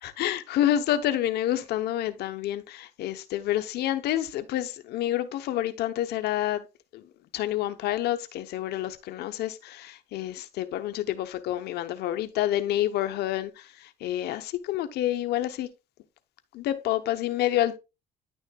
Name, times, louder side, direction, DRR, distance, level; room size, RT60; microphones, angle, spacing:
voice 1, 0.0-6.6 6.9-7.0 7.3-15.7 16.5-17.8, left 12 dB, 75° left, 0.8 m, -28 dB
10.0 x 6.3 x 2.3 m
cardioid pair, 110°, 17 cm